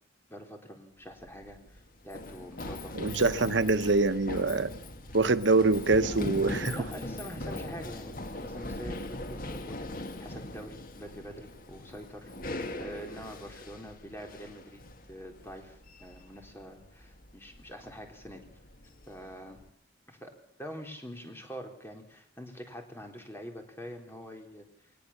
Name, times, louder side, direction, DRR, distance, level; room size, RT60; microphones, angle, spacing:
voice 1, 0.3-3.0 6.7-14.8 15.1-18.4 19.1-19.6 20.1-20.3 20.6-24.7, equal, 15° left, 3.8 m, -45 dB
Run, 1.1-19.7, left 1 dB, 50° left, 1.8 m, -41 dB
voice 2, 2.9-4.7 5.1-6.8, right 3 dB, 80° right, 0.9 m, -25 dB
sound 1, 5.8-7.7 8.2-9.3 9.5-10.1, equal, 5° right, 3.9 m, -51 dB
21.0 x 20.0 x 7.3 m
head